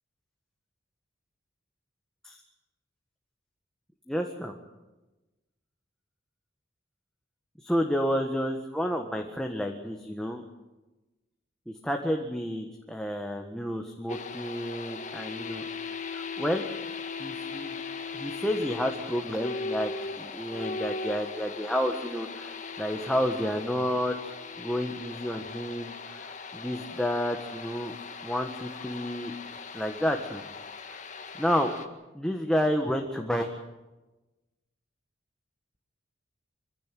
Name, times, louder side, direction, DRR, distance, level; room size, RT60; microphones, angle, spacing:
voice 1, 4.1-4.5 7.6-10.4 11.7-15.6 16.1-16.7 17.2-17.7 18.1-27.9 28.2-29.3 29.7-30.4 30.9-31.0 31.4-31.7 32.1-33.5, equal, 5° left, 2 dB, 1.6 m, -30 dB
sound 1, 14.1-31.9, left 4 dB, 40° left, 1.9 m, -39 dB
24.5 x 16.5 x 9.3 m, 1.1 s
head